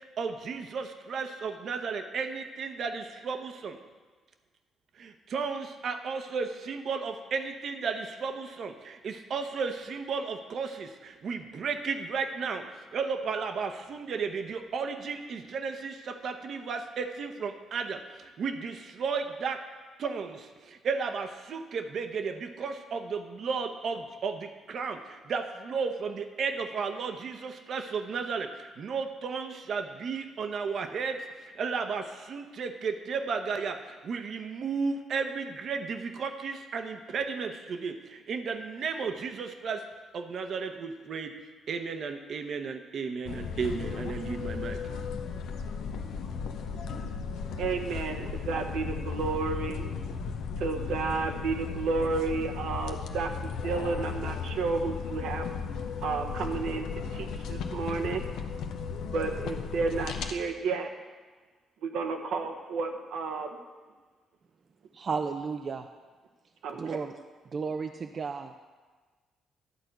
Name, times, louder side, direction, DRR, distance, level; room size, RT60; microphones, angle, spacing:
voice 1, 0.2-3.8 5.0-12.7 12.9-19.6 20.0-39.8 40.1-41.4 41.7-44.8, right 5 dB, 60° right, 7 dB, 0.9 m, -34 dB
sound 1, 43.3-60.3, left 5 dB, 80° left, 0.7 m, -35 dB
voice 2, 47.6-49.9 50.6-55.5 56.0-56.9 57.1-58.2 59.1-60.9 61.8-63.5 66.6-67.1, right 4 dB, 80° right, 4 dB, 1.0 m, -31 dB
voice 3, 64.9-65.9 66.8-67.1 67.5-68.7, right 5 dB, 45° right, 6 dB, 0.4 m, -33 dB
11.5 x 4.4 x 7.9 m, 1.4 s
cardioid pair, 90°, 0 cm